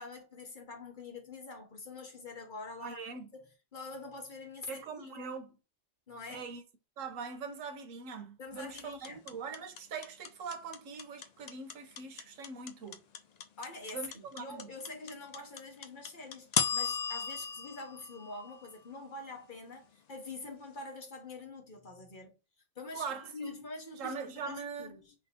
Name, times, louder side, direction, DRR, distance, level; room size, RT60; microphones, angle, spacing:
voice 1, 0.0-3.0 3.3-3.4 3.7-5.3 6.1-6.4 8.4-9.2 13.6-22.4 22.8-23.0 23.3-25.1, left 3 dB, 45° left, 1.0 m, -45 dB
voice 2, 2.8-3.3 4.7-5.6 6.3-6.6 7.0-13.0 13.9-14.7 22.9-23.6 24.0-24.9, right 5 dB, 85° right, 1.2 m, -42 dB
sound 1, 8.8-18.9, left 7 dB, 65° left, 0.4 m, -35 dB
3.7 x 2.7 x 4.0 m
omnidirectional pair, 1.3 m